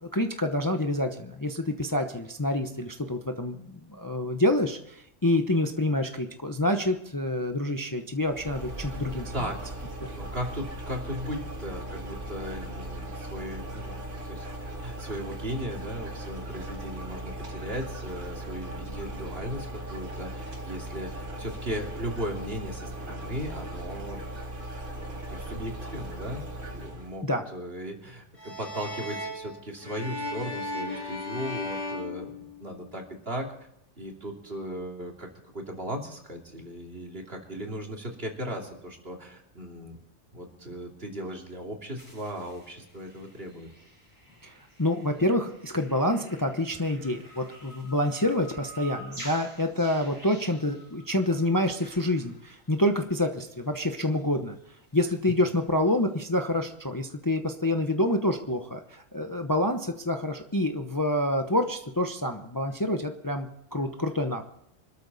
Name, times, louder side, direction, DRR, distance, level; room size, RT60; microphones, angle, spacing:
voice 1, 0.0-9.3 27.2-27.4 44.4-44.5 44.8-54.6 54.9-64.4, left 1 dB, 20° left, 5 dB, 0.9 m, -27 dB
sound 1, 8.2-27.2, right 1 dB, 80° right, 3.0 m, -38 dB
voice 2, 9.3-9.7 10.1-24.3 25.0-26.4 26.7-27.3 27.5-33.5 34.0-40.0 40.3-43.7 55.4-55.6, equal, 50° right, 1 dB, 3.2 m, -37 dB
sound 2, 28.4-33.0, left 2 dB, 60° left, 5.4 m, -36 dB
sound 3, 42.0-53.2 53.5-53.6 53.9-54.0 54.2-54.3 54.6-54.7, right 1 dB, 15° right, 7.6 m, -49 dB
25.0 x 13.5 x 4.1 m, 0.76 s
omnidirectional pair, 1.3 m